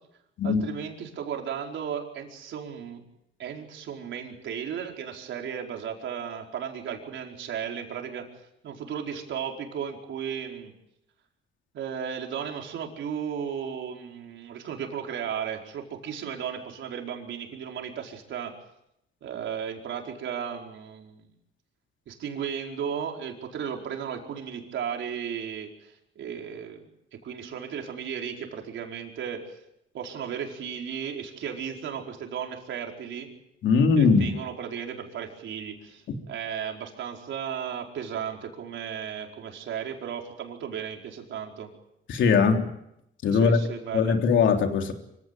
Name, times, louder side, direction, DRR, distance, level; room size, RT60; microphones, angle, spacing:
voice 1, 0.4-3.0 3.4-8.3 8.6-10.7 11.7-18.5 19.2-21.3 22.1-26.9 27.2-29.6 29.9-33.3 33.9-41.7 43.3-44.2, right 8 dB, 70° right, 2 dB, 4.8 m, -35 dB
voice 2, 33.6-34.3 36.1-36.2 42.1-42.7 43.2-43.6 43.9-44.9, left 5 dB, 75° left, 4 dB, 3.3 m, -20 dB
25.0 x 17.0 x 9.2 m, 0.81 s
cardioid pair, 90°, 20 cm